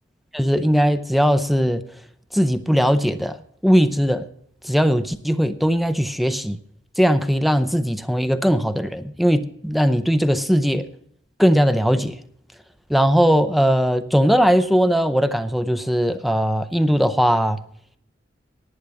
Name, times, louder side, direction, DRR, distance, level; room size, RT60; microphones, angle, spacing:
voice 1, 0.3-1.8 2.3-3.4 3.6-4.2 4.6-6.6 7.0-10.9 11.4-12.2 12.9-17.6, equal, ahead, 0.6 m, -19 dB
11.0 x 9.0 x 7.2 m
head